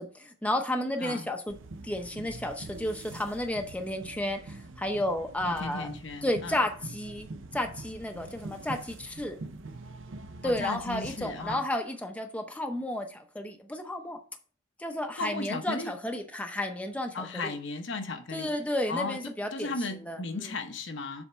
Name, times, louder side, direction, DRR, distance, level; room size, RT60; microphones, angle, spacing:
voice 1, 0.0-1.6 1.8-5.9 6.2-7.3 7.5-9.4 10.4-14.2 14.8-17.6 18.3-19.7 20.0-20.2, left 1 dB, 5° left, 0.7 m, -32 dB
sound 1, 1.5-11.5, right 2 dB, 70° right, 0.6 m, -44 dB
voice 2, 5.4-6.6 10.4-11.6 15.2-15.9 17.1-18.5 18.9-19.2 19.5-21.2, left 3 dB, 65° left, 0.9 m, -35 dB
7.1 x 3.5 x 5.5 m
head